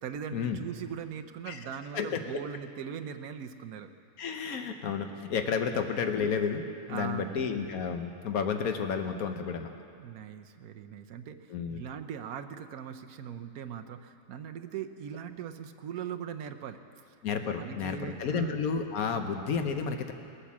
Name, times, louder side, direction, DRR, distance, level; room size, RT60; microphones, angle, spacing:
voice 1, 0.0-3.9 5.8-5.9 6.9-7.5 10.0-17.2 17.6-18.6 19.1-19.3, right 8 dB, 85° right, 7 dB, 1.2 m, -40 dB
voice 2, 4.2-9.7 11.5-11.8 17.2-20.1, left 6 dB, 80° left, 6 dB, 1.4 m, -31 dB
20.0 x 8.5 x 7.3 m, 2.4 s
omnidirectional pair, 1.5 m